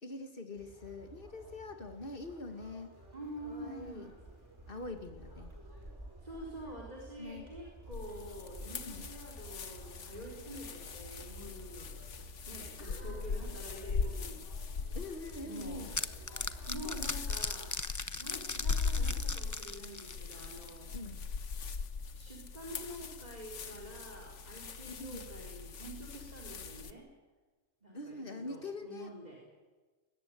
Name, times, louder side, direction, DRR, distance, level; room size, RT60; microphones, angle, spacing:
voice 1, 0.0-3.0 3.4-4.1 4.7-5.5 7.2-7.5 8.9-9.1 12.8-13.3 14.9-16.0 20.9-21.3 24.9-25.3 27.9-29.1, left 2 dB, 50° left, 5 dB, 2.4 m, -44 dB
Conversation, 0.5-16.9, right 1 dB, 20° right, 6.1 m, -53 dB
voice 2, 3.1-4.1 6.2-11.9 12.5-14.4 15.4-15.9 16.7-17.8 18.2-20.9 22.1-27.1 27.8-29.4, right 1 dB, 35° right, -1 dB, 4.1 m, -47 dB
sound 1, 7.9-26.9, left 5 dB, 90° left, 1.5 m, -40 dB
sound 2, 15.3-20.8, left 3 dB, 20° left, 0.6 m, -39 dB
21.5 x 18.5 x 9.4 m, 1.3 s
omnidirectional pair, 1.2 m